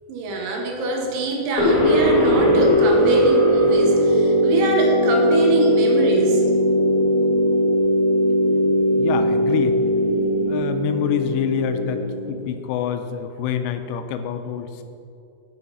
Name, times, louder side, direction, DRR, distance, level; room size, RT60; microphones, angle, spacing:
voice 1, 0.1-6.4, right 2 dB, 75° right, 1 dB, 3.0 m, -23 dB
sound 1, 1.6-12.4, equal, 50° left, 3.3 m, -19 dB
voice 2, 9.0-9.8 10.5-14.8, left 8 dB, 90° left, 8 dB, 2.9 m, -26 dB
8.3 x 7.3 x 5.4 m, 2.5 s
omnidirectional pair, 4.9 m